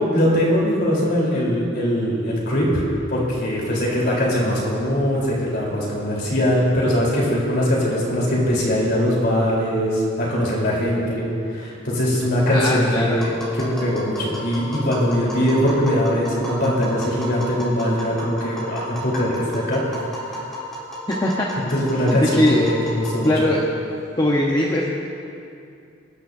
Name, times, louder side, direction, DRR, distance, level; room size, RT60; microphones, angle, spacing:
voice 1, 0.1-2.8 3.1-11.2 11.5-19.8 21.7-23.3, equal, 55° left, -4 dB, 3.9 m, -21 dB
voice 2, 12.4-13.2 21.1-21.5 22.1-22.6 23.2-23.6 24.2-24.9, left 1 dB, 20° left, -3 dB, 1.0 m, -20 dB
Tap, 13.2-23.6, equal, 5° left, 3.3 m, -33 dB
25.5 x 11.5 x 2.7 m, 2.5 s
head